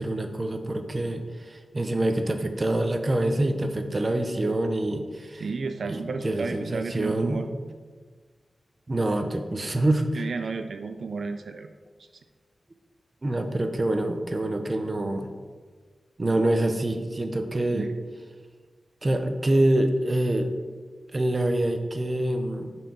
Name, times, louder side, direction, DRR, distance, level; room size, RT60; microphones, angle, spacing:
voice 1, 0.0-5.4 5.8-7.5 8.9-10.3 13.2-15.3 16.2-17.8 19.0-20.5 21.1-22.7, right 1 dB, 35° right, 6 dB, 0.6 m, -26 dB
voice 2, 5.3-7.5 10.1-11.7 17.7-17.9, right 4 dB, 80° right, 7 dB, 0.3 m, -32 dB
6.3 x 4.5 x 4.5 m, 1.5 s
wide cardioid pair, 105°, 0 cm